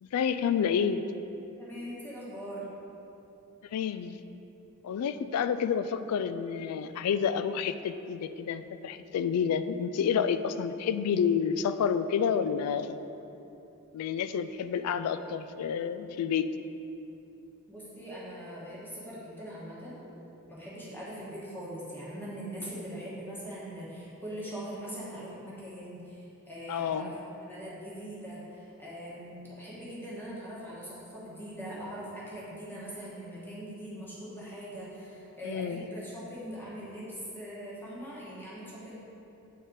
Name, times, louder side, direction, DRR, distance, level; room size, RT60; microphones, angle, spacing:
voice 1, 0.1-1.0 3.7-4.2 4.8-13.0 13.9-16.5 26.7-27.1 35.4-35.9, left 7 dB, 80° left, 15 dB, 0.3 m, -29 dB
voice 2, 1.6-2.7 17.7-20.0 20.5-27.1 27.5-39.0, equal, 10° left, -8 dB, 1.4 m, -41 dB
8.3 x 4.2 x 3.9 m, 2.9 s
head